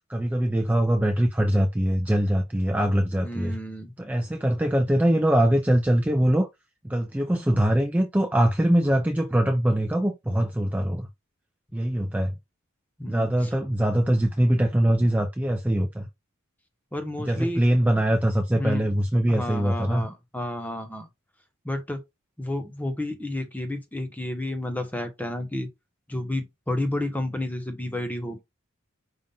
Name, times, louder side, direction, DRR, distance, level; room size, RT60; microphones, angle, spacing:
voice 1, 0.1-3.6 4.0-6.5 6.8-11.1 11.7-12.4 13.1-16.1 17.3-20.1, right 1 dB, 5° right, 0.4 m, -23 dB
voice 2, 3.2-3.9 13.0-13.3 16.9-17.6 18.5-18.9 19.3-21.1 21.6-22.0 22.4-25.7 26.1-28.4, left 1 dB, 10° left, 0.9 m, -31 dB
5.4 x 2.4 x 3.8 m
head